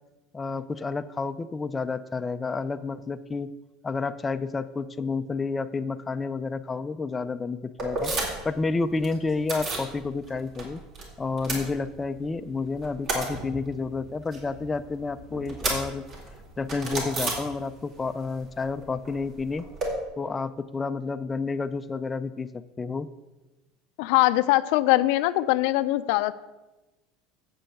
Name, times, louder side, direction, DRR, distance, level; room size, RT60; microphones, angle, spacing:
voice 1, 0.3-3.5 3.8-8.1 8.4-10.8 11.2-16.1 16.6-19.6 20.2-23.1, left 4 dB, 15° left, 9 dB, 0.5 m, -30 dB
sound 1, 7.8-8.6 8.8-9.9 10.3-11.0 11.3-12.3 12.6-18.0 18.3-19.9, right 2 dB, 45° right, 3.6 m, -33 dB
voice 2, 24.0-26.3, left 17 dB, 70° left, 13 dB, 0.5 m, -22 dB
7.8 x 7.1 x 7.8 m, 1.1 s
supercardioid pair, 120°, 0 cm